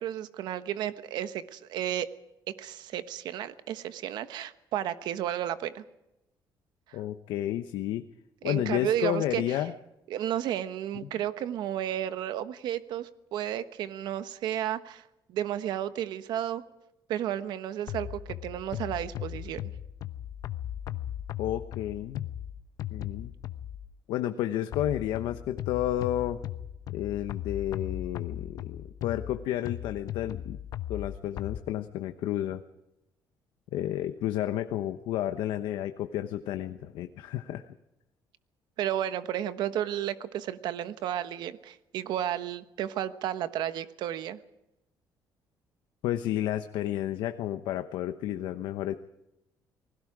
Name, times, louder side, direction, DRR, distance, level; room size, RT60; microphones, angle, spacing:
voice 1, 0.0-2.1 2.6-5.8 6.9-7.0 8.4-9.4 10.1-15.0 15.3-16.6 17.1-19.6 38.8-44.4, right 11 dB, 70° right, 11 dB, 1.2 m, -32 dB
voice 2, 6.9-8.0 8.4-9.7 11.0-11.1 21.4-22.3 22.9-23.3 24.1-26.4 26.9-30.6 30.9-32.6 33.7-37.7 46.0-49.0, left 12 dB, 85° left, 8 dB, 1.1 m, -31 dB
sound 1, 17.9-23.9 24.7-31.6, left 11 dB, 55° left, 1.0 m, -37 dB
29.0 x 20.5 x 4.9 m, 0.90 s
cardioid pair, 170°, 8 cm